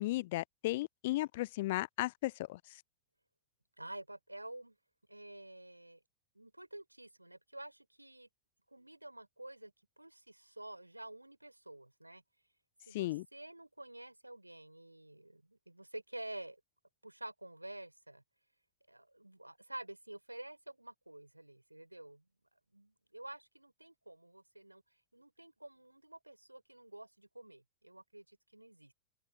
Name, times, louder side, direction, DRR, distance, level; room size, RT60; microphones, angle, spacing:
voice 1, 0.0-2.6 12.9-13.2, left 18 dB, 50° left, 0.4 m, -35 dB
voice 2, 3.8-4.8 5.1-6.0 6.3-8.3 8.7-12.2 12.9-16.6 17.0-18.2 18.9-22.3 22.5-24.8 25.1-28.9, right 1 dB, 85° right, 6.1 m, -50 dB
open air
figure-of-eight pair, 90°, 0 cm